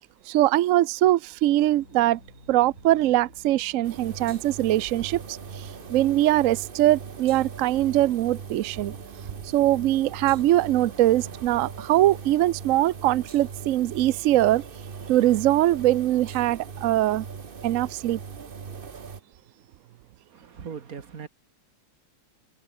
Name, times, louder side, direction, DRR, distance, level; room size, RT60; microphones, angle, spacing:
voice 1, 0.3-2.2 2.5-8.9 9.4-14.6 15.1-17.2 17.6-18.2, right 14 dB, 75° right, 0.7 m, -22 dB
sound 1, 1.6-12.4, left 1 dB, 45° left, 8.4 m, -54 dB
sound 2, 3.8-19.2, right 5 dB, 35° right, 1.1 m, -40 dB
voice 2, 20.3-21.3, right 6 dB, 50° right, 2.0 m, -39 dB
omnidirectional pair, 2.0 m